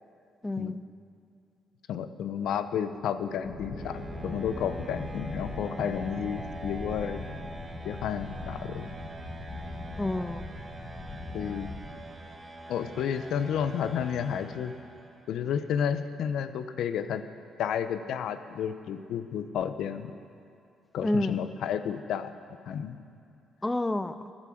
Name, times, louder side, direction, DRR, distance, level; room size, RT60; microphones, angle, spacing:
voice 1, 0.4-0.8 10.0-10.5 21.0-21.4 23.6-24.3, left 1 dB, 15° left, 12 dB, 0.4 m, -29 dB
voice 2, 1.9-7.2 7.8-8.9 11.3-11.7 12.7-14.7 15.3-17.2 17.6-20.1 20.9-22.3 22.7-23.0, left 8 dB, 75° left, 11 dB, 0.6 m, -31 dB
sound 1, 2.5-15.4, right 2 dB, 30° right, 1.2 m, -44 dB
sound 2, 3.4-11.8, left 2 dB, 55° left, 3.3 m, -40 dB
13.5 x 9.8 x 6.3 m, 2.5 s
cardioid pair, 90°, 0 cm